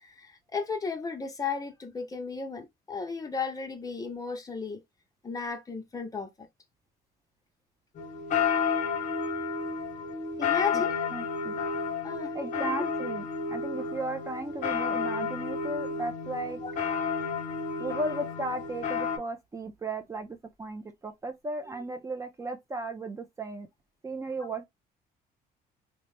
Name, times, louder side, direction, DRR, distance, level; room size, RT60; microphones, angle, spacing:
voice 1, 0.0-4.8 5.2-6.3 10.4-10.9 12.0-12.9 16.6-16.7 24.4-24.5, left 5 dB, 20° left, 0.7 m, -34 dB
sound 1, 7.9-19.2, left 5 dB, 50° left, 0.8 m, -31 dB
voice 2, 11.1-11.6 12.3-16.6 17.8-23.7 24.0-24.7, right 2 dB, 20° right, 0.4 m, -35 dB
2.9 x 2.1 x 3.1 m
cardioid pair, 110°, 17 cm